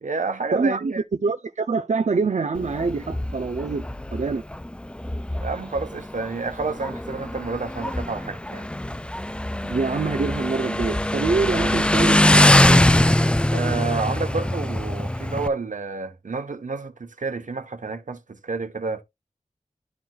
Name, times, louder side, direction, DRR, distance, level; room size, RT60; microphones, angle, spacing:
voice 1, 0.0-1.0 5.4-8.7 13.5-19.0, right 4 dB, 85° right, 1.1 m, -29 dB
voice 2, 0.5-0.9 1.2-4.4 9.6-12.9, right 4 dB, 65° right, 0.5 m, -25 dB
Motorcycle, 2.6-15.5, left 1 dB, 10° left, 0.4 m, -22 dB
11.5 x 4.6 x 2.4 m
wide cardioid pair, 50°, 13 cm